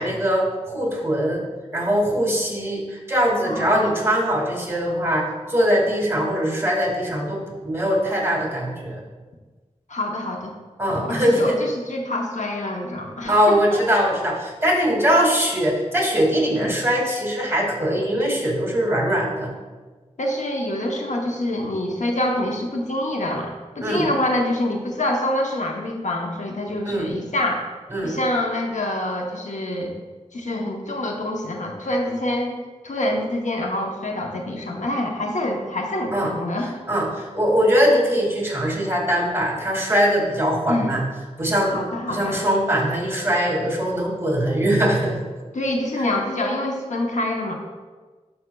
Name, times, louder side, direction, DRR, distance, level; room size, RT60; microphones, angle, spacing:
voice 1, 0.0-1.4 1.7-9.0 10.8-11.6 13.3-19.5 23.8-24.1 26.8-27.1 27.9-28.2 36.1-36.3 36.9-41.0 41.4-41.8 42.1-45.2, equal, 20° right, -2 dB, 2.1 m, -21 dB
voice 2, 3.4-4.0 9.9-10.5 11.0-13.8 16.5-16.7 20.2-27.6 28.0-29.9 30.3-36.7 40.7-40.9 41.7-42.4 45.5-47.5, left 1 dB, 90° left, 1 dB, 0.8 m, -26 dB
12.0 x 5.6 x 2.3 m, 1.3 s
wide cardioid pair, 60°, 12 cm